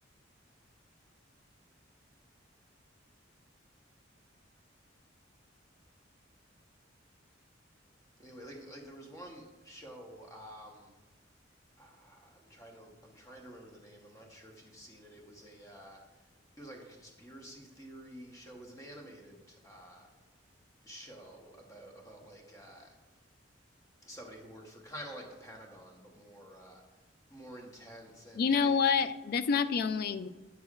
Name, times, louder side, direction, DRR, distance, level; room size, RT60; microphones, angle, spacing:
voice 1, 8.2-10.9 11.8-16.3 16.6-20.1 20.8-23.0 24.0-28.8, equal, 15° left, 1 dB, 0.9 m, -50 dB
voice 2, 28.3-30.3, left 6 dB, 50° left, 13 dB, 0.3 m, -28 dB
8.3 x 6.2 x 2.4 m, 1.1 s
head